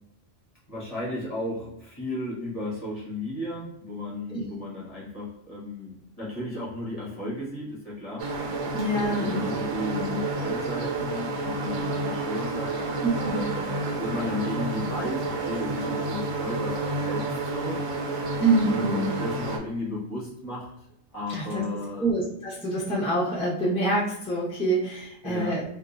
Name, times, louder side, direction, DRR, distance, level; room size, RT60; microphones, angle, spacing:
voice 1, 0.7-8.7 9.0-17.8 18.7-20.7 21.1-22.1 25.2-25.5, left 1 dB, 30° left, -6 dB, 1.0 m, -34 dB
sound 1, 8.2-19.6, right 2 dB, 90° right, 1.0 m, -30 dB
voice 2, 8.7-9.6 13.0-13.4 18.4-19.1 21.3-21.6 22.0-25.6, right 2 dB, 5° left, -7 dB, 0.7 m, -26 dB
3.5 x 2.5 x 2.5 m, 0.81 s
omnidirectional pair, 1.3 m